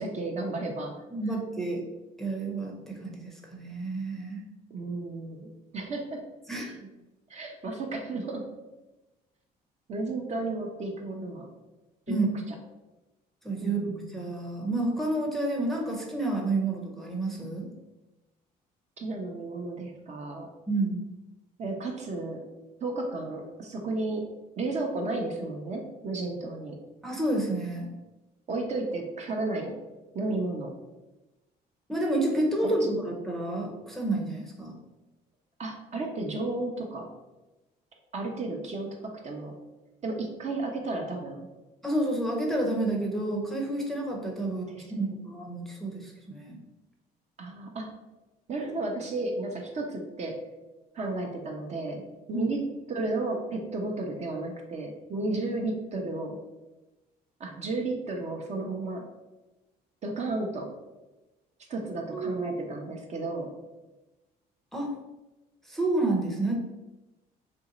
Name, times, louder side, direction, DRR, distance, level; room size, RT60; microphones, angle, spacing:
voice 1, 0.0-1.0 4.7-6.2 7.3-8.5 9.9-11.5 12.1-12.5 13.6-14.2 19.0-20.5 21.6-22.4 22.8-24.3 24.6-26.8 28.5-29.8 30.1-30.7 32.6-32.9 35.6-37.1 38.1-39.6 40.0-41.5 44.4-45.0 47.4-47.9 48.5-50.3 50.9-56.4 57.4-59.0 60.0-60.7 61.7-63.5, right 2 dB, 40° right, 2 dB, 0.7 m, -33 dB
voice 2, 1.1-1.8 2.2-4.4 6.5-6.9 12.1-12.4 13.4-17.7 20.7-21.0 27.0-27.9 31.9-33.0 33.2-34.8 41.8-46.6 52.3-52.5 62.1-62.6 64.7-64.9 65.7-66.6, right 2 dB, ahead, 0 dB, 0.6 m, -30 dB
3.0 x 2.7 x 3.9 m, 1.1 s
cardioid pair, 110°, 17 cm